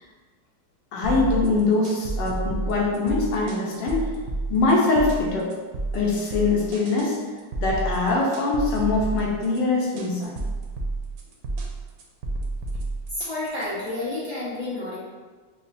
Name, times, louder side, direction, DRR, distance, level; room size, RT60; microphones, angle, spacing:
voice 1, 0.9-4.1 4.5-5.5 5.9-7.2 7.6-10.4, left 3 dB, 75° left, -2 dB, 1.3 m, -23 dB
sound 1, 1.0-13.9, right 3 dB, 75° right, 0.9 m, -30 dB
voice 2, 13.1-15.0, left 2 dB, 35° left, -10 dB, 0.8 m, -30 dB
5.1 x 2.1 x 2.6 m, 1.4 s
omnidirectional pair, 2.0 m